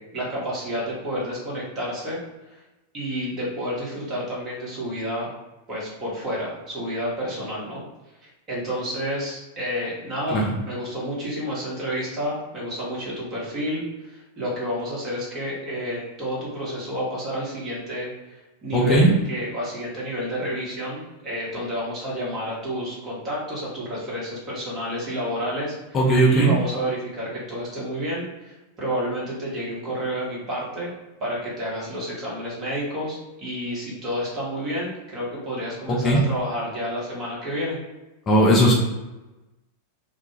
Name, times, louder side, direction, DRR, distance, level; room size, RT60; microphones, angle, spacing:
voice 1, 0.0-2.2 2.5-2.6 2.9-5.3 5.7-7.8 8.2-18.1 18.6-30.9 31.2-37.8, equal, 25° right, -5 dB, 1.1 m, -30 dB
voice 2, 18.7-19.1 25.9-26.5 36.0-36.2 38.3-38.7, right 1 dB, 25° left, -3 dB, 0.5 m, -17 dB
2.3 x 2.1 x 3.0 m, 1.1 s
figure-of-eight pair, 90°, 0 cm